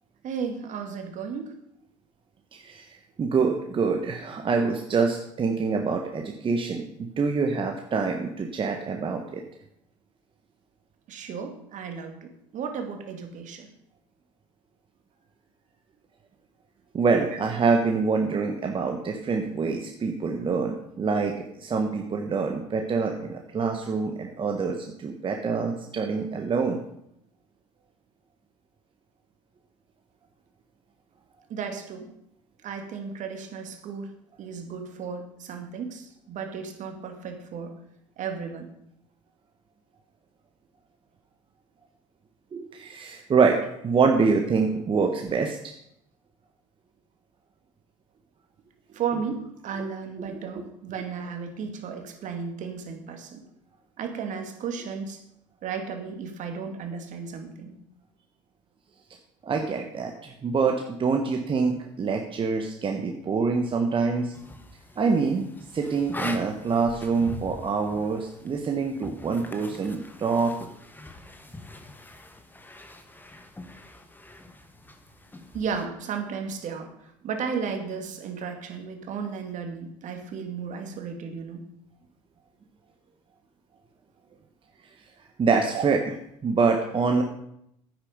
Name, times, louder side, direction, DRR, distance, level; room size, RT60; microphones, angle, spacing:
voice 1, 0.2-1.5 11.1-13.7 17.3-17.4 31.5-32.1 32.6-34.1 34.4-37.7 38.2-38.7 48.9-53.4 54.0-55.2 55.6-57.8 75.5-81.6 85.7-85.9, right 6 dB, 50° right, 6 dB, 2.2 m, -34 dB
voice 2, 2.5-2.9 3.2-6.8 7.2-9.4 16.9-26.8 42.5-43.6 43.8-45.6 59.4-64.3 65.0-65.5 65.7-70.5 85.4-86.0 86.4-87.2, right 4 dB, 30° right, 3 dB, 1.4 m, -25 dB
sound 1, 64.3-75.9, left 2 dB, 10° left, 1.5 m, -43 dB
9.8 x 9.3 x 5.2 m, 0.76 s
hypercardioid pair, 70°, 16 cm